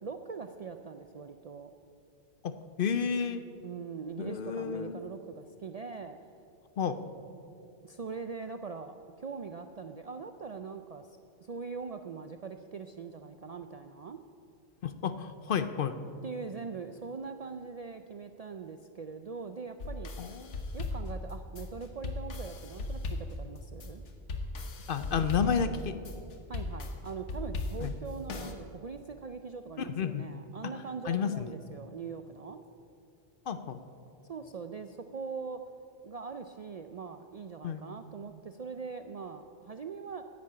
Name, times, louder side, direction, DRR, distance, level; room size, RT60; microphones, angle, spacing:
voice 1, 0.0-1.7 3.6-6.2 7.8-11.1 11.4-14.2 16.2-20.1 20.7-24.0 26.5-32.6 34.3-35.6 36.0-40.2, right 5 dB, 55° right, 7 dB, 0.4 m, -42 dB
voice 2, 2.4-3.4 4.2-5.0 6.8-7.0 14.8-16.0 20.2-20.6 24.9-26.0 27.8-27.9 29.8-30.3 31.0-31.5 33.5-33.8 37.6-37.8, left 7 dB, 55° left, 11 dB, 0.7 m, -31 dB
sound 1, 19.8-28.5, left 2 dB, 90° left, 1.4 m, -38 dB
10.5 x 9.4 x 8.7 m, 2.7 s
omnidirectional pair, 1.2 m